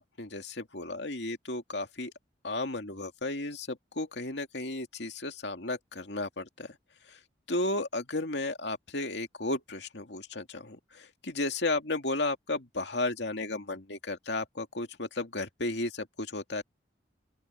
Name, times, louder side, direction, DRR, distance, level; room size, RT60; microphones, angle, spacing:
voice 1, 0.0-2.1 2.4-6.8 7.1-7.2 7.5-16.6, left 2 dB, 70° left, 2.3 m, -34 dB
open air
head